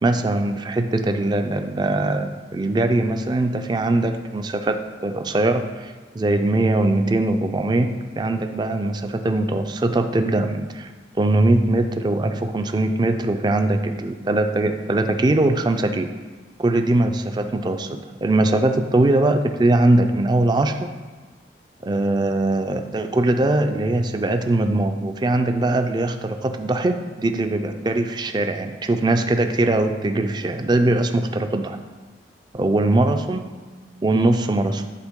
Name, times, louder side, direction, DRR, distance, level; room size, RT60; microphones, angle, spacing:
voice 1, 0.0-7.9 8.2-10.9 11.2-16.1 16.6-20.9 21.8-31.8 32.5-33.5 34.0-34.8, right 2 dB, 25° right, 7 dB, 0.3 m, -21 dB
10.5 x 3.7 x 3.6 m, 1.4 s
head